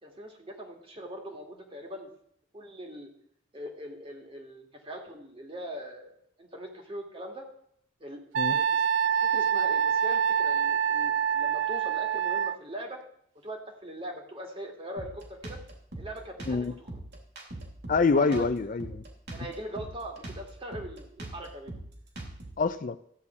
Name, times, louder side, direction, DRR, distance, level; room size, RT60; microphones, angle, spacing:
voice 1, 0.0-2.1 2.5-3.1 3.5-7.4 8.0-8.2 8.5-13.0 13.4-15.6 16.0-17.0 18.1-18.4 19.3-21.7, equal, 30° right, 2 dB, 2.2 m, -41 dB
Wind instrument woodwind instrument, 8.3-12.6, right 8 dB, 75° right, 0.4 m, -26 dB
Drum kit, 15.0-22.6, right 1 dB, 60° right, 3.0 m, -42 dB
voice 2, 17.9-19.0 22.6-23.0, left 4 dB, 45° left, 12 dB, 0.5 m, -25 dB
14.5 x 4.9 x 8.3 m, 0.69 s
head